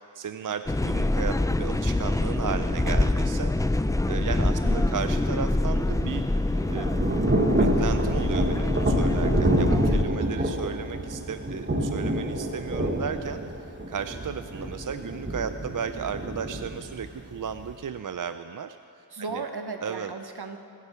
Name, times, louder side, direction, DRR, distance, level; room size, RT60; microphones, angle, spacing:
voice 1, 0.0-3.8 4.1-6.2 6.7-6.9 7.5-18.8 19.3-19.4 19.8-20.1, right 7 dB, 55° right, 10 dB, 0.5 m, -35 dB
sound 1, 0.7-10.0, left 2 dB, 10° left, 0.4 m, -25 dB
voice 2, 4.6-5.1 9.7-10.6 19.1-20.6, right 4 dB, 70° right, 6 dB, 1.2 m, -37 dB
Thunder / Rain, 5.8-17.8, right 1 dB, 30° right, 1.2 m, -28 dB
23.5 x 8.2 x 5.6 m, 2.5 s
wide cardioid pair, 55°, 40 cm